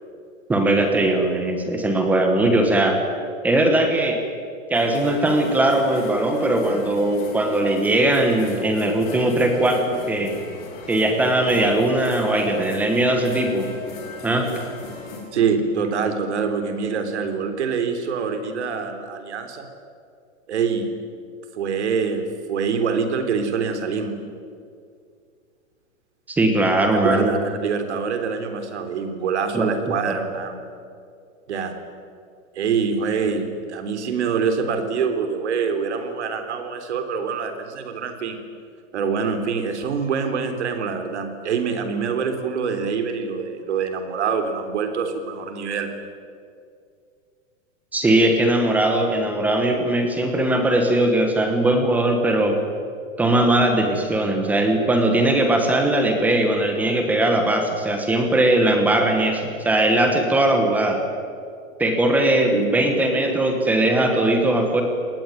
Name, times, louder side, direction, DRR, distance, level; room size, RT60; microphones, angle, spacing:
voice 1, 0.5-3.0 3.4-4.2 4.7-10.3 10.9-13.7 14.2-14.5 26.3-27.3 29.5-29.7 30.0-30.1 47.9-52.6 53.2-61.0 61.8-64.8, right 1 dB, 5° right, 4 dB, 1.2 m, -20 dB
sound 1, 4.7-15.2, left 3 dB, 20° left, 4.6 m, -38 dB
voice 2, 15.3-19.7 20.5-20.9 21.5-22.2 22.5-24.1 26.9-30.6 31.5-31.7 32.6-38.4 38.9-45.9 62.5-62.7, right 6 dB, 55° right, 6 dB, 3.6 m, -25 dB
26.5 x 19.5 x 9.2 m, 2.3 s
hypercardioid pair, 180°, 40 cm